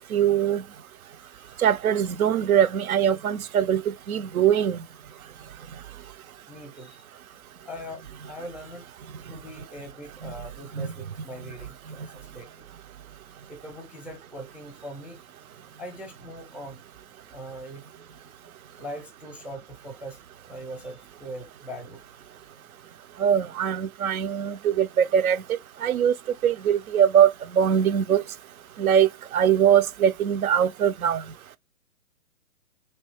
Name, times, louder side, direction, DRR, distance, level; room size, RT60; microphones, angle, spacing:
voice 1, 0.1-0.6 1.6-3.8 4.1-4.8 10.8-10.9 23.2-25.4 25.8-26.1 26.4-27.3 27.5-28.2 28.8-31.2, right 9 dB, 75° right, 0.6 m, -21 dB
voice 2, 6.5-7.0 7.6-8.9 9.3-12.7 13.5-15.2 15.8-16.8 17.3-17.8 18.8-20.2 20.5-22.0, equal, 10° right, 0.4 m, -41 dB
3.3 x 2.7 x 3.0 m
hypercardioid pair, 155°, 43 cm